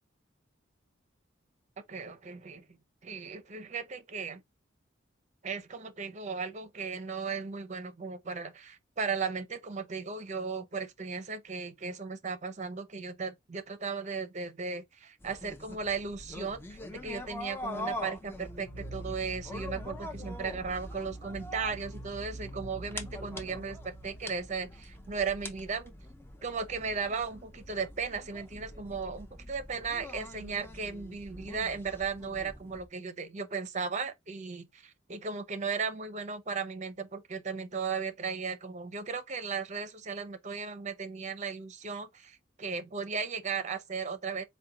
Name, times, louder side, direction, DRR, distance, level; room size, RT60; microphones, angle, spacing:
voice 1, 1.9-2.6 3.0-4.4 5.4-25.9 26.4-44.4, right 5 dB, 40° right, 0.6 m, -36 dB
sound 1, 15.2-32.8, left 1 dB, 10° left, 0.5 m, -44 dB
sound 2, 18.3-25.6, right 1 dB, 80° left, 0.7 m, -45 dB
4.1 x 2.2 x 3.6 m
head